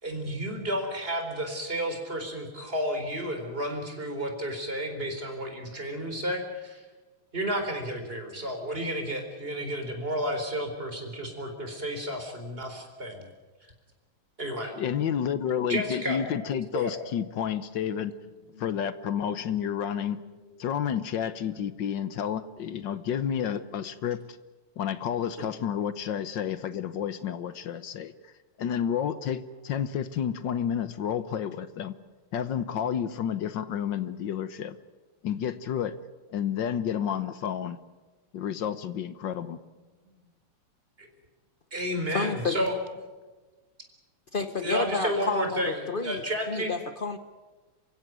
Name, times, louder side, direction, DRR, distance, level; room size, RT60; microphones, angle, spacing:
voice 1, 0.0-6.8 7.3-13.3 14.4-14.7 15.7-16.2 16.7-16.9 18.5-18.6 41.0-41.1 41.7-42.8 44.6-46.8, equal, 25° right, 4 dB, 4.3 m, -31 dB
voice 2, 14.8-18.1 18.6-20.2 20.6-24.2 24.8-28.1 28.6-31.9 32.3-34.8 35.2-35.9 36.3-37.8 38.3-39.6, left 8 dB, 60° left, 14 dB, 1.5 m, -30 dB
voice 3, 42.1-42.6 44.3-47.2, left 4 dB, 80° left, 10 dB, 0.4 m, -30 dB
27.5 x 16.0 x 9.3 m, 1.3 s
omnidirectional pair, 2.4 m